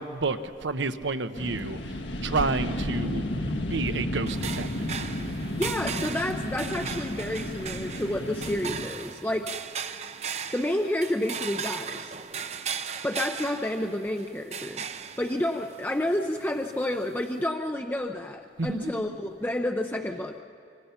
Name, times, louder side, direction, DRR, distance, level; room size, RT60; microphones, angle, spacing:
voice 1, 0.0-3.2 3.7-5.0 18.6-19.2, right 3 dB, 80° right, 10 dB, 0.9 m, -30 dB
sound 1, 1.3-8.8, left 1 dB, 80° left, 1.6 m, -32 dB
sound 2, 4.3-17.5, right 7 dB, 35° right, 0.7 m, -38 dB
voice 2, 5.6-9.5 10.5-12.1 13.0-14.9 15.2-20.4, left 1 dB, 10° left, 3 dB, 0.6 m, -30 dB
25.5 x 25.5 x 5.8 m, 2.6 s
head